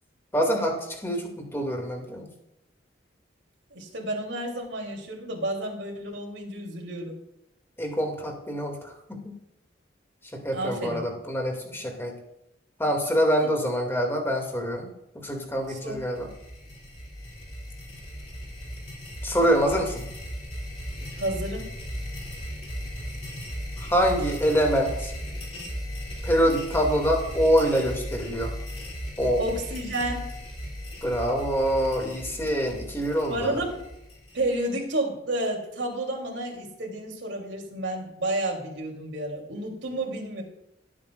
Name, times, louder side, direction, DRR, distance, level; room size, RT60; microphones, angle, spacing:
voice 1, 0.3-2.2 7.8-9.3 10.3-12.1 12.8-16.3 19.2-20.0 23.8-25.1 26.2-28.5 29.2-29.4 31.0-33.6, equal, 15° left, 1 dB, 2.3 m, -25 dB
voice 2, 3.7-7.2 10.5-11.0 15.7-16.1 21.1-21.7 29.4-30.3 33.3-33.8 34.3-40.4, right 1 dB, 75° right, 0 dB, 3.2 m, -31 dB
sound 1, 15.6-34.7, equal, 35° left, 2.9 m, -36 dB
18.0 x 8.6 x 2.5 m, 0.85 s
head